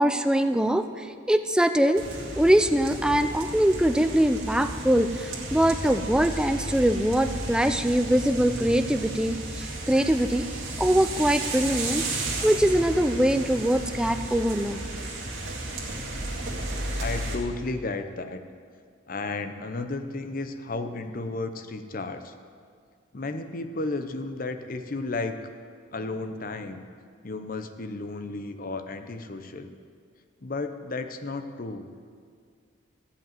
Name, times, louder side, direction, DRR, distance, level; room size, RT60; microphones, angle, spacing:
voice 1, 0.0-2.0 2.4-10.4 10.8-12.1 12.4-14.8, right 1 dB, 5° right, 9 dB, 0.4 m, -23 dB
sound 1, 1.9-17.4, right 2 dB, 80° right, 2.1 m, -33 dB
voice 2, 17.0-18.4 19.1-22.3 23.1-25.4 25.9-26.8 27.2-29.7 30.4-31.9, left 3 dB, 40° left, 8 dB, 0.7 m, -33 dB
15.0 x 5.4 x 9.1 m, 2.1 s
head